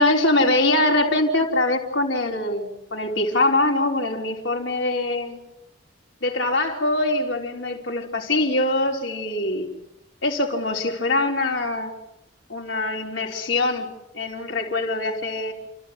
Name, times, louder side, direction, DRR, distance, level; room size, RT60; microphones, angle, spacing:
voice 1, 0.0-5.4 6.2-9.7 10.2-11.9 12.5-13.9 14.1-15.5, left 2 dB, 90° left, 1 dB, 4.2 m, -23 dB
30.0 x 15.0 x 8.3 m, 0.90 s
head